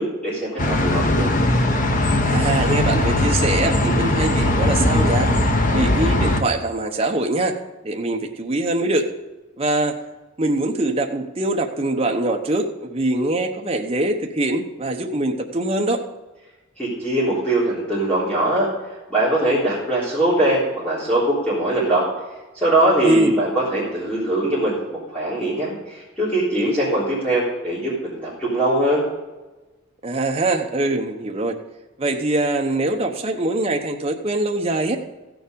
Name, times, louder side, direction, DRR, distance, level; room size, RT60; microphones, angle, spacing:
voice 1, 0.0-1.3 16.8-18.7 19.1-22.1 22.5-29.0, right 1 dB, 5° left, -10 dB, 3.7 m, -21 dB
sound 1, 0.6-6.4, left 1 dB, 40° left, 1.0 m, -19 dB
voice 2, 2.2-5.3 5.7-7.6 7.8-9.1 9.6-9.9 10.4-16.0 23.0-23.4 30.0-31.6 32.0-35.0, right 2 dB, 30° right, 2 dB, 1.0 m, -23 dB
15.5 x 7.1 x 5.2 m, 1.1 s
head